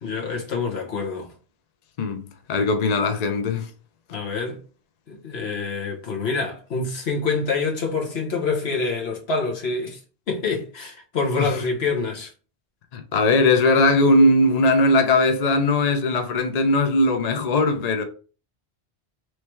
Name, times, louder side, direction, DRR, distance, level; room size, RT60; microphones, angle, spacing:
voice 1, 0.0-1.3 4.1-4.6 5.1-10.0 10.3-12.3, left 4 dB, 65° left, 1.3 m, -26 dB
voice 2, 2.5-3.7 11.4-11.5 12.9-18.0, left 2 dB, 45° left, 0.6 m, -19 dB
3.2 x 3.2 x 4.4 m
omnidirectional pair, 1.2 m